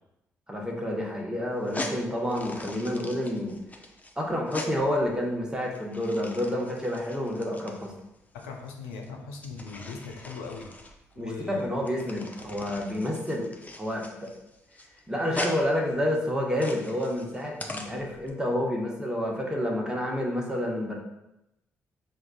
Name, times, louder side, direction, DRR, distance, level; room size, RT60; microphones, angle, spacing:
voice 1, 0.5-3.6 4.2-7.9 11.2-13.5 13.8-14.3 15.1-20.9, left 1 dB, 10° right, -1 dB, 1.0 m, -29 dB
sound 1, 1.5-18.3, left 2 dB, 20° left, 0.5 m, -42 dB
voice 2, 8.3-10.7 11.1-11.8, left 4 dB, 85° left, 1 dB, 0.5 m, -39 dB
5.2 x 2.4 x 2.3 m, 0.88 s
hypercardioid pair, 45°, 7 cm